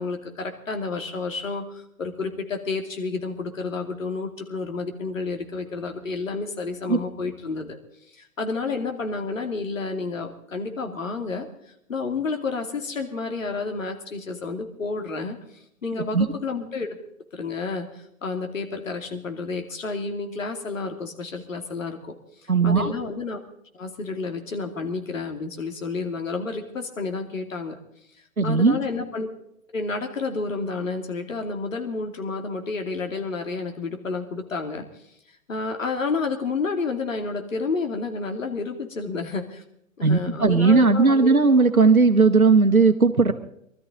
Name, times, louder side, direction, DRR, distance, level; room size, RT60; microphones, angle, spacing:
voice 1, 0.0-7.8 8.1-11.5 11.9-15.4 15.8-17.0 17.3-22.1 22.4-23.4 23.8-27.8 28.4-29.3 29.7-34.9 35.5-39.6 40.0-41.4, left 4 dB, 70° left, 5 dB, 2.6 m, -30 dB
voice 2, 22.5-22.9 28.4-28.8 40.0-43.3, right 4 dB, 90° right, 7 dB, 1.2 m, -17 dB
23.5 x 13.0 x 3.8 m, 0.75 s
figure-of-eight pair, 115°, 41 cm